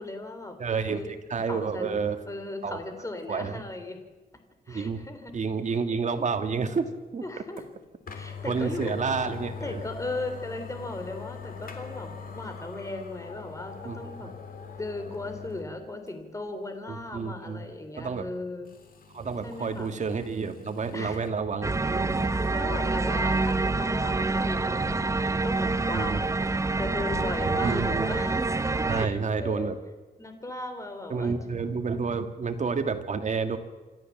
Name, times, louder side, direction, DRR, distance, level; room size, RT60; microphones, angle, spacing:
voice 1, 0.0-0.6 0.9-1.1 1.5-4.0 4.7-5.3 7.2-7.6 8.1-9.0 9.6-14.3 14.8-18.7 19.4-20.0 20.9-21.2 22.5-26.3 26.8-28.5 28.9-29.7 30.2-31.6, left 2 dB, 20° left, 7 dB, 3.2 m, -37 dB
voice 2, 0.6-2.2 2.6-2.8 3.3-3.6 4.7-5.0 5.3-7.2 8.4-9.8 13.8-14.3 16.9-17.6 18.0-18.3 19.1-22.4 25.9-26.2 27.6-28.1 28.9-29.8 31.1-33.6, right 5 dB, 45° right, 7 dB, 2.1 m, -30 dB
sound 1, 7.6-7.7 8.1-15.7 16.1-16.2 18.7-21.3, left 5 dB, 60° left, 3.2 m, -42 dB
sound 2, 21.6-29.1, right 3 dB, 20° right, 0.6 m, -27 dB
27.5 x 13.5 x 7.3 m, 1.3 s
wide cardioid pair, 125°, 17 cm